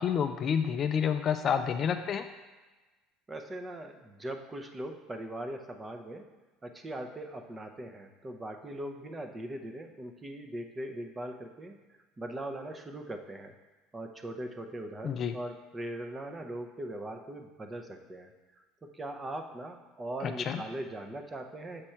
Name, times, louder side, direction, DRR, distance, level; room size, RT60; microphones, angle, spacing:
voice 1, 0.0-2.3 15.0-15.3 20.2-20.6, left 7 dB, 35° left, 8 dB, 0.4 m, -29 dB
voice 2, 3.3-6.3 6.6-11.8 12.2-13.5 13.9-18.3 18.8-21.9, right 1 dB, 15° right, 5 dB, 0.6 m, -40 dB
6.5 x 6.0 x 4.4 m, 1.2 s
cardioid pair, 145°, 0 cm